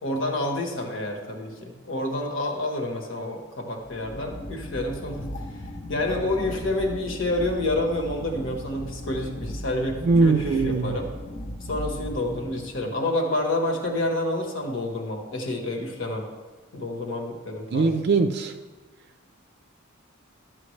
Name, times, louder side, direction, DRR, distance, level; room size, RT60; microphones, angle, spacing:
voice 1, 0.0-5.3 5.5-5.6 5.9-11.1 11.7-16.3 16.7-18.0, left 1 dB, 65° left, 2 dB, 1.3 m, -28 dB
sound 1, 3.8-12.9, equal, 40° left, 0.7 m, -37 dB
voice 2, 10.0-11.0 17.7-18.5, right 4 dB, 50° right, 6 dB, 0.4 m, -21 dB
12.0 x 7.6 x 3.2 m, 1.3 s
head